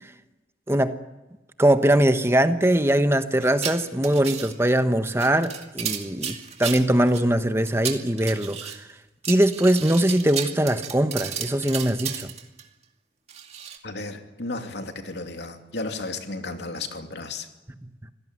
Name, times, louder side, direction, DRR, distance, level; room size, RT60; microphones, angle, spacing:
voice 1, 1.6-8.7 9.3-12.3, right 1 dB, 15° right, 9 dB, 1.1 m, -21 dB
sound 1, 3.4-4.7 5.1-7.2 7.7-8.8 9.2-12.6 13.3-13.8, right 8 dB, 40° right, 2.3 m, -33 dB
voice 2, 13.8-17.5, left 3 dB, 75° left, 5 dB, 2.8 m, -33 dB
26.0 x 17.5 x 9.6 m, 1.0 s
head